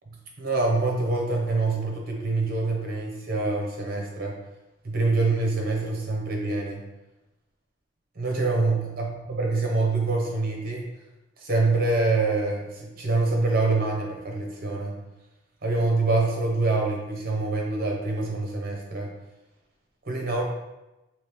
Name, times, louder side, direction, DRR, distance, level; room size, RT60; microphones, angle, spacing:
voice 1, 0.4-4.4 4.8-6.8 8.2-10.8 11.4-15.0 15.6-19.1 20.0-20.4, right 3 dB, 50° right, 0 dB, 0.8 m, -25 dB
3.1 x 2.8 x 3.4 m, 0.99 s
head